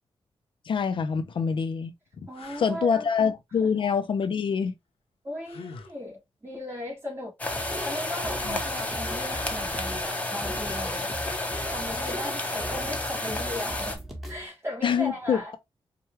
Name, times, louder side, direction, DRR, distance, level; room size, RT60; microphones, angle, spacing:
voice 1, 0.7-1.9 2.6-4.7 8.4-8.6 14.8-15.6, left 6 dB, 60° left, 0.5 m, -25 dB
sound 1, 0.9-1.0 1.6-1.7 2.3-2.8 5.4-6.0 9.2-9.9 12.8-13.0, left 5 dB, 85° left, 0.8 m, -45 dB
voice 2, 2.3-3.1 3.6-3.7 5.2-11.2 11.7-14.0 14.3-15.6, left 1 dB, 25° right, 2.0 m, -37 dB
sound 2, 7.4-14.0, left 2 dB, 15° left, 0.8 m, -31 dB
sound 3, 7.5-14.5, equal, ahead, 1.2 m, -39 dB
4.6 x 2.3 x 3.1 m
cardioid pair, 90°, 10 cm